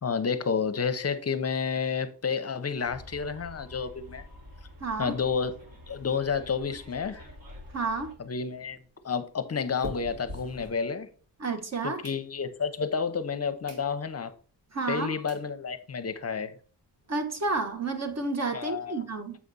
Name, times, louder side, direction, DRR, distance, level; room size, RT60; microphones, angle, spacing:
voice 1, 0.0-4.2 5.0-5.6 5.9-7.3 8.2-8.8 9.0-11.1 11.8-14.3 14.9-16.6 18.5-19.0, left 5 dB, 35° left, 0.7 m, -30 dB
Bus, 2.8-8.1, left 1 dB, 55° right, 2.6 m, -48 dB
voice 2, 4.8-5.2 7.7-8.1 11.4-12.0 14.7-15.2 17.1-19.4, right 3 dB, 40° right, 1.2 m, -30 dB
sound 1, 8.5-11.4 11.8-12.7 13.2-13.3 13.6-13.9 14.3-14.4 15.0-15.1 15.3-15.5 15.9-16.0 16.2-16.3 16.6-16.7 17.0-18.1, equal, 75° right, 2.7 m, -46 dB
7.4 x 4.9 x 4.0 m
wide cardioid pair, 155°, 42 cm